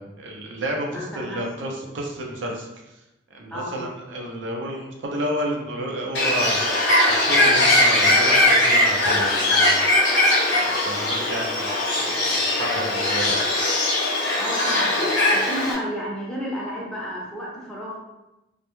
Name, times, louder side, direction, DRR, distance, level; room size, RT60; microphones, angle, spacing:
voice 1, 0.0-2.7 3.3-6.6 7.1-9.8 10.6-13.4, right 1 dB, 85° right, -1 dB, 0.5 m, -31 dB
voice 2, 0.9-1.6 3.5-3.8 14.4-15.0 15.3-18.0, equal, 5° left, -5 dB, 0.5 m, -32 dB
Bird, 6.1-15.7, left 1 dB, 70° left, 0.7 m, -20 dB
2.1 x 2.1 x 2.9 m, 0.95 s
head